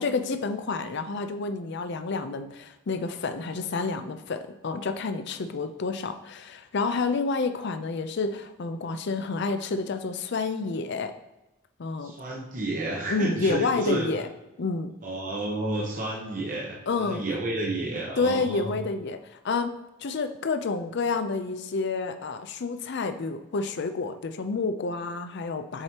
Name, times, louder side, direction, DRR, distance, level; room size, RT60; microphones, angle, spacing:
voice 1, 0.0-11.1 11.8-12.1 13.1-14.3 14.6-14.9 16.9-17.2 18.2-25.8, left 4 dB, 55° left, 9 dB, 0.5 m, -29 dB
voice 2, 12.0-14.1 15.0-18.7, right 2 dB, 40° right, -4 dB, 0.9 m, -31 dB
7.3 x 4.9 x 2.9 m, 0.99 s
head